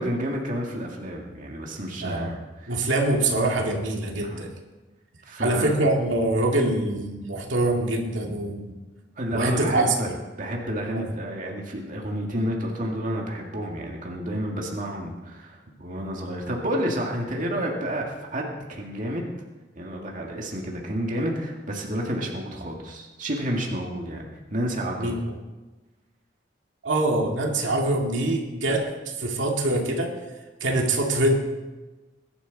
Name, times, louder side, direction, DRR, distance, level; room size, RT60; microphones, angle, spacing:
voice 1, 0.0-2.9 4.2-4.4 5.3-5.8 9.2-10.1 10.4-19.3 19.8-25.2, equal, 45° right, -1 dB, 2.1 m, -30 dB
voice 2, 2.0-2.4 2.7-4.5 5.4-8.7 9.3-10.0 10.9-11.1 25.0-25.2 26.8-28.9 29.2-30.1 30.6-31.4, right 2 dB, 75° right, 0 dB, 2.3 m, -24 dB
21.5 x 11.5 x 4.1 m, 1.2 s
head